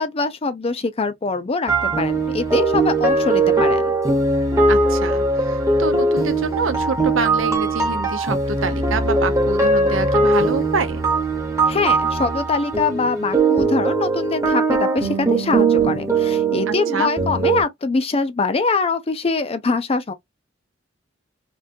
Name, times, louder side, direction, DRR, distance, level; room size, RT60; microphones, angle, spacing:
voice 1, 0.0-3.9 11.7-20.1, left 4 dB, 30° left, 0.5 m, -23 dB
sound 1, 1.7-17.6, right 3 dB, 15° right, 1.0 m, -20 dB
voice 2, 4.7-11.0 16.7-17.1, right 4 dB, 85° right, 0.7 m, -26 dB
3.6 x 2.5 x 2.5 m
head